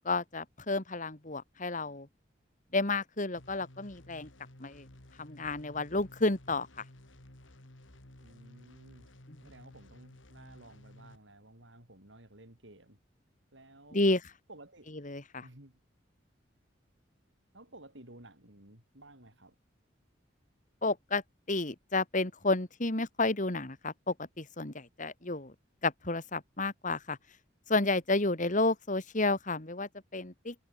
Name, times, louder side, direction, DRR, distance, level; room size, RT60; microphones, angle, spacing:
voice 1, 0.0-2.1 2.7-4.3 4.6-4.9 5.2-6.8 9.3-9.4 13.9-14.2 15.0-15.5 20.8-21.2 21.5-25.5 25.8-27.2 27.7-30.5, left 2 dB, 40° left, 2.4 m, -31 dB
sound 1, 3.4-11.2, left 1 dB, 85° left, 3.1 m, -55 dB
voice 2, 8.2-9.1 9.4-13.0 13.5-14.1 14.5-14.9 15.4-15.8 17.5-19.6, right 1 dB, 70° right, 7.7 m, -54 dB
head